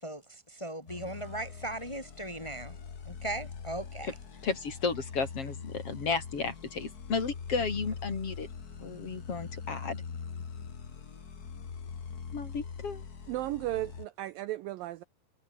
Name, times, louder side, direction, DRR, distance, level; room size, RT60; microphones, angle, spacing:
voice 1, 0.0-2.8 3.1-4.1, right 1 dB, 15° left, 0.9 m, -38 dB
sound 1, 0.9-14.1, left 6 dB, 70° left, 0.9 m, -43 dB
voice 2, 4.4-8.5 8.8-10.0 12.3-13.0, left 4 dB, 35° left, 3.9 m, -33 dB
voice 3, 13.3-15.0, right 16 dB, 80° right, 2.0 m, -35 dB
omnidirectional pair, 4.9 m